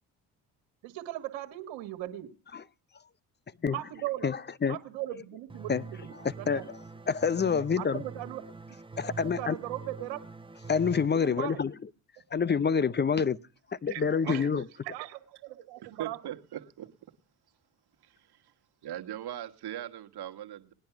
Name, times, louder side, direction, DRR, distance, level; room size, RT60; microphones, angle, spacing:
voice 1, 0.8-2.3 3.7-4.3 4.7-6.7 7.8-8.4 9.4-10.2 11.1-11.6 13.9-14.5 14.8-16.2, right 15 dB, 75° right, 1.7 m, -38 dB
voice 2, 4.2-4.8 5.7-5.8 6.2-6.8 7.1-8.0 9.0-9.6 10.7-11.7 12.3-13.4 13.7-14.7, left 6 dB, 25° left, 0.7 m, -27 dB
sound 1, 5.5-11.1, right 4 dB, 10° right, 0.9 m, -44 dB
voice 3, 14.3-14.6 15.8-16.9 18.0-18.4 18.8-20.7, right 11 dB, 55° right, 1.7 m, -40 dB
19.5 x 10.5 x 5.9 m
hypercardioid pair, 55°, 46 cm